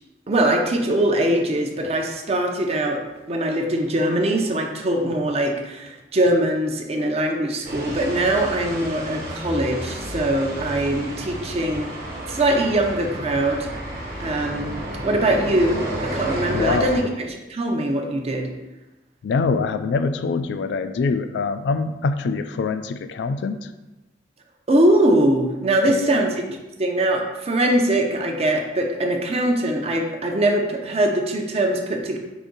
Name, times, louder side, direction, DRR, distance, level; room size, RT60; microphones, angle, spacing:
voice 1, 0.3-3.0 3.3-11.9 12.3-13.7 14.2-14.7 15.0-18.5 24.7-32.2, right 1 dB, 35° right, 2 dB, 0.5 m, -22 dB
sound 1, 7.6-17.0, right 1 dB, 55° right, 1.0 m, -31 dB
voice 2, 16.5-17.0 19.2-23.7 25.9-26.2, left 4 dB, 70° left, 10 dB, 0.3 m, -24 dB
4.9 x 2.6 x 3.8 m, 1.0 s
head